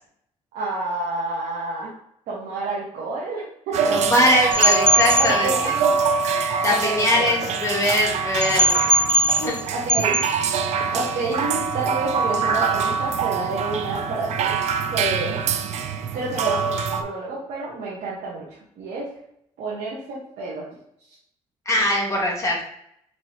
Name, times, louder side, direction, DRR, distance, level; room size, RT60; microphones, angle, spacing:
voice 1, 0.5-1.9 2.3-4.0 5.2-5.9 6.7-7.5 9.7-10.2 10.9-14.5 14.9-15.4 16.1-19.1 19.6-20.6, right 2 dB, 85° right, -7 dB, 1.1 m, -29 dB
sound 1, 3.7-17.0, right 6 dB, 65° right, 0.4 m, -24 dB
voice 2, 3.9-5.7 6.6-8.9 9.4-9.5 21.6-22.6, left 1 dB, 25° left, -3 dB, 1.5 m, -21 dB
sound 2, 4.5-5.3 8.4-9.6 9.9-10.2, equal, 5° left, 0.6 m, -19 dB
4.6 x 3.1 x 2.8 m, 0.70 s
cardioid pair, 90°, 12 cm